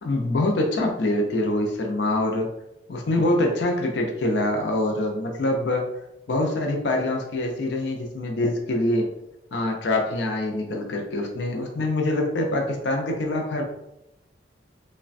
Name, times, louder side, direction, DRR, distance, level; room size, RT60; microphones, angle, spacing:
voice 1, 0.0-2.5 2.9-5.8 6.3-9.1 9.5-13.6, left 1 dB, 65° left, 1 dB, 0.5 m, -24 dB
3.2 x 2.1 x 2.5 m, 0.88 s
head